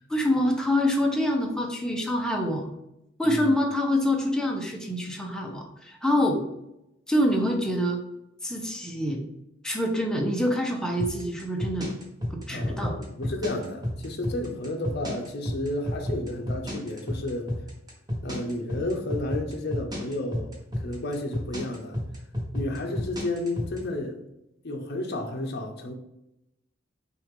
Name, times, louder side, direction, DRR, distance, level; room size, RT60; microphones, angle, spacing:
voice 1, 0.1-2.7 3.2-6.4 7.1-8.0 8.4-9.2 9.6-11.9 12.3-13.0, left 1 dB, 5° left, 0.6 m, -26 dB
sound 1, 11.0-23.8, left 1 dB, 20° right, 1.1 m, -30 dB
voice 2, 12.5-17.5 18.2-22.0 22.5-24.2 24.6-25.9, left 1 dB, 55° left, 0.7 m, -32 dB
6.0 x 2.5 x 3.6 m
head